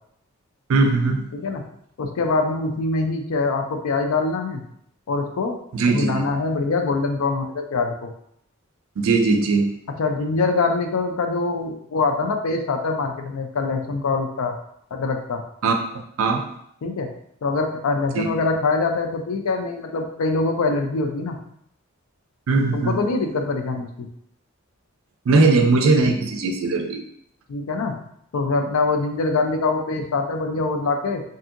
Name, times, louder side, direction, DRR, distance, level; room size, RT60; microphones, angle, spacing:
voice 1, 0.7-1.3 5.7-6.3 9.0-9.7 15.6-15.7 16.2-16.4 18.2-18.3 22.5-23.0 25.3-27.0, right 3 dB, 70° right, 4 dB, 0.4 m, -19 dB
voice 2, 1.3-1.7 2.0-4.6 5.1-5.6 5.9-8.1 10.0-14.6 14.9-15.4 16.8-17.1 17.4-21.4 22.7-24.1 27.5-28.0 28.3-31.2, left 3 dB, 75° left, 4 dB, 0.4 m, -24 dB
2.7 x 2.6 x 2.5 m, 0.71 s
head